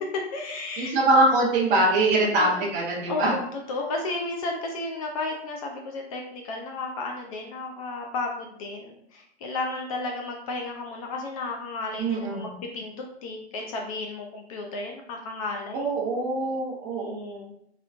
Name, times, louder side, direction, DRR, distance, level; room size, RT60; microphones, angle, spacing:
voice 1, 0.0-0.9 2.2-2.7 3.1-15.9 17.0-17.5, left 3 dB, 35° left, 1 dB, 0.4 m, -33 dB
voice 2, 0.8-3.3 12.0-12.5 15.7-17.4, right 2 dB, 20° right, -4 dB, 0.7 m, -23 dB
3.1 x 3.0 x 2.4 m, 0.70 s
hypercardioid pair, 140°, 33 cm